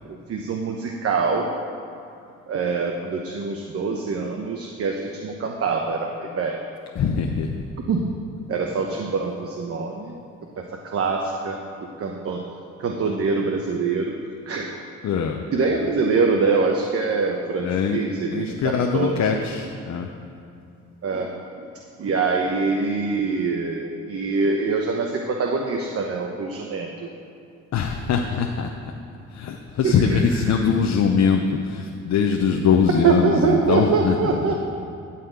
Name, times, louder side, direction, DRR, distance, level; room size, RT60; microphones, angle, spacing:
voice 1, 0.1-1.5 2.5-6.6 7.9-8.1 8.5-10.1 10.6-11.6 12.0-12.4 12.8-14.2 14.5-14.7 15.5-19.3 21.0-21.3 22.0-27.1 29.8-30.2 33.0-34.7, right 4 dB, 50° right, 1 dB, 1.0 m, -24 dB
voice 2, 6.9-7.6 15.0-15.4 17.6-18.0 18.3-20.1 27.7-28.7 29.3-34.5, left 6 dB, 60° left, 2 dB, 0.8 m, -22 dB
13.0 x 4.3 x 8.1 m, 2.6 s
cardioid pair, 90°, 30 cm